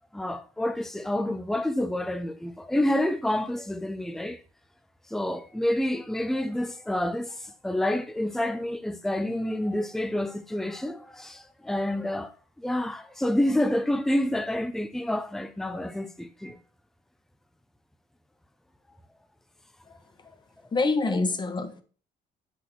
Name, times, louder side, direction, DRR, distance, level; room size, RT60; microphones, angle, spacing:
voice 1, 0.1-4.4 5.1-12.3 12.6-16.6 21.1-21.2, left 1 dB, ahead, 0.8 m, -28 dB
voice 2, 20.7-21.8, left 3 dB, 25° left, 1.5 m, -26 dB
9.9 x 6.8 x 4.5 m
cardioid pair, 110°, 17 cm